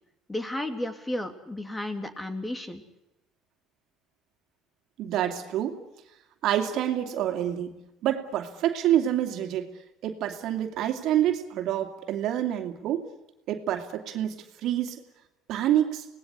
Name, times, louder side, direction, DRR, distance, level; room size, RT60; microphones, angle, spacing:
voice 1, 0.3-2.8, left 1 dB, 15° left, 8 dB, 3.1 m, -33 dB
voice 2, 5.0-5.8 6.4-7.8 8.0-9.7 10.0-13.0 13.5-15.0 15.5-16.1, right 11 dB, 65° right, 5 dB, 2.7 m, -27 dB
25.5 x 19.0 x 8.3 m, 0.92 s
supercardioid pair, 80°, 0 cm